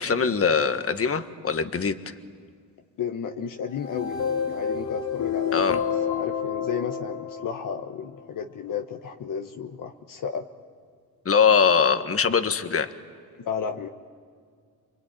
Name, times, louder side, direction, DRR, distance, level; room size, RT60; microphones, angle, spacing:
voice 1, 0.0-2.1 5.5-5.8 11.2-12.9, left 6 dB, 35° left, 9 dB, 1.6 m, -22 dB
voice 2, 3.0-5.8 6.1-10.4 13.4-13.9, left 7 dB, 55° left, 5 dB, 1.3 m, -33 dB
sound 1, 3.7-8.0, left 7 dB, 85° left, 3.3 m, -29 dB
29.0 x 22.0 x 9.3 m, 2.1 s
cardioid pair, 75°, 38 cm